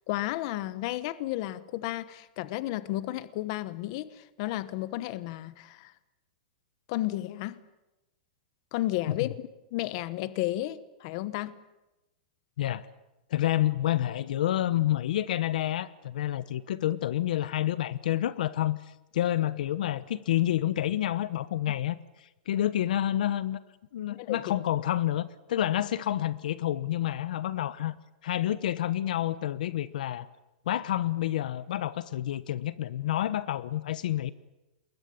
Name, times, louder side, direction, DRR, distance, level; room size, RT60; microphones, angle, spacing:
voice 1, 0.1-5.9 6.9-7.6 8.7-9.3 9.7-11.5 24.2-24.5, left 16 dB, 40° left, 1.1 m, -32 dB
voice 2, 13.3-18.8 19.1-23.6 23.9-27.9 28.2-30.3 30.7-34.3, left 12 dB, 65° left, 1.0 m, -29 dB
28.0 x 21.5 x 8.7 m
supercardioid pair, 170°, 5 cm